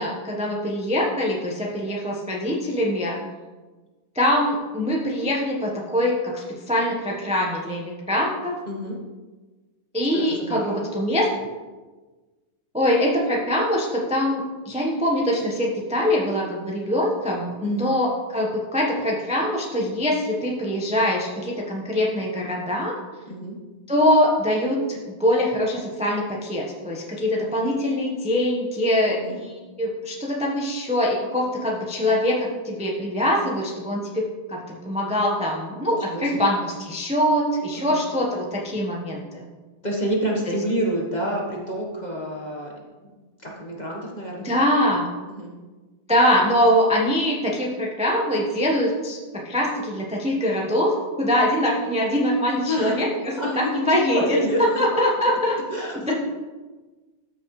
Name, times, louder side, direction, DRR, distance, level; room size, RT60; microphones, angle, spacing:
voice 1, 0.0-3.2 4.1-8.5 9.9-11.5 12.7-22.9 23.9-39.5 40.5-40.6 44.4-45.1 46.1-55.5 56.1-56.2, equal, 5° right, -2 dB, 0.6 m, -23 dB
voice 2, 8.7-9.0 10.1-10.9 17.6-17.9 23.3-23.6 29.0-29.4 35.8-36.5 37.8-38.0 39.8-42.7 43.1-44.7 45.3-45.5 52.6-53.0 53.4-54.8 55.7-56.1, equal, 25° left, -2 dB, 1.1 m, -28 dB
13.5 x 6.2 x 3.2 m, 1.3 s
omnidirectional pair, 2.2 m